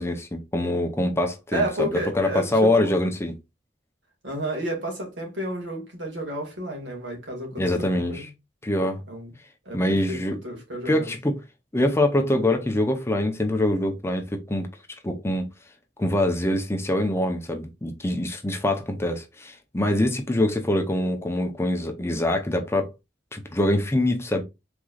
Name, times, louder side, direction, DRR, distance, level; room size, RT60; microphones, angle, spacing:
voice 1, 0.0-3.3 7.6-8.3 8.6-9.0 9.7-10.4 10.9-11.4 11.7-14.7 15.0-15.5 16.0-22.9 23.3-24.4, left 1 dB, 15° left, 0.6 m, -24 dB
voice 2, 1.5-3.0 4.2-8.3 9.1-9.3 9.7-11.3, right 1 dB, 75° right, 2.0 m, -32 dB
4.8 x 3.7 x 2.4 m
head